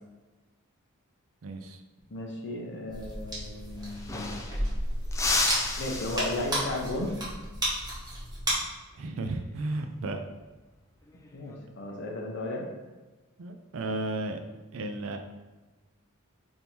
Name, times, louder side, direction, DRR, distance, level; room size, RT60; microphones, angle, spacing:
voice 1, 1.4-1.8 9.0-10.2 13.4-14.4 14.7-15.2, right 2 dB, 60° right, 5 dB, 0.4 m, -33 dB
voice 2, 2.1-4.3 5.8-7.1 11.3-12.7, left 1 dB, 50° left, -1 dB, 0.8 m, -34 dB
sound 1, 2.9-8.5, right 1 dB, 20° right, 1.1 m, -33 dB
sound 2, 3.5-3.6 3.8-4.7 5.1-6.9 9.4-9.7 11.1-11.5, left 2 dB, 15° left, 0.3 m, -32 dB
3.5 x 2.7 x 4.4 m, 1.2 s
head